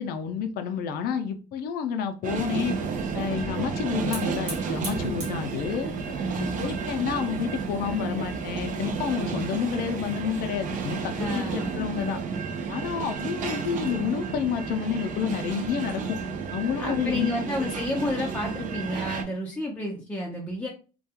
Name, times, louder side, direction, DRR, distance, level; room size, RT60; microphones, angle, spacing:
voice 1, 0.0-2.8 3.1-5.9 6.6-12.2 12.7-16.2 16.5-17.3, left 7 dB, 65° left, 0.4 m, -29 dB
sound 1, 2.2-19.2, right 5 dB, 50° right, 0.5 m, -32 dB
Hiss / Fire, 2.4-9.3, right 1 dB, 75° right, 1.1 m, -43 dB
sound 2, 2.9-19.0, left 3 dB, 15° right, 1.1 m, -48 dB
voice 2, 6.1-6.7 11.1-11.7 16.8-20.7, left 1 dB, 10° left, 0.5 m, -30 dB
2.3 x 2.2 x 2.7 m
cardioid pair, 110°, 17 cm